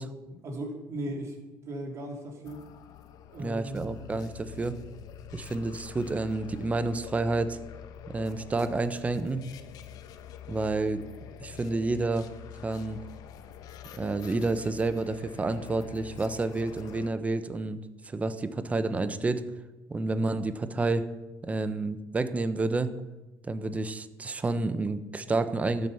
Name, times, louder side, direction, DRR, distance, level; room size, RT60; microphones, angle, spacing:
voice 1, 0.3-1.4 1.6-2.6 3.3-3.9, right 1 dB, 45° right, 1 dB, 3.7 m, -37 dB
sound 1, 2.4-17.1, left 9 dB, 65° left, 1.1 m, -46 dB
voice 2, 3.4-4.7 5.3-7.6 8.1-9.4 10.5-11.0 11.4-12.3 12.6-13.0 13.9-19.4 19.9-21.1 21.4-22.9 23.4-25.9, right 3 dB, 20° right, 11 dB, 1.0 m, -29 dB
13.0 x 7.8 x 7.0 m, 1.1 s
supercardioid pair, 100°, 7 cm